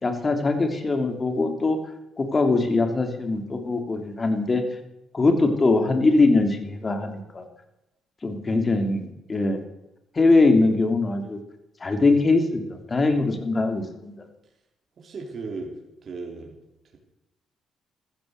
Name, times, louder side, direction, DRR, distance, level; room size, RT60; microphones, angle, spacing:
voice 1, 0.0-1.8 2.2-4.6 5.1-7.4 8.2-9.6 10.1-11.4 11.8-14.2, left 3 dB, 30° left, 6 dB, 3.1 m, -22 dB
voice 2, 15.0-15.8 16.0-16.5, right 3 dB, 50° right, 0 dB, 3.7 m, -36 dB
14.5 x 14.5 x 6.6 m, 0.91 s
cardioid pair, 90°, 0 cm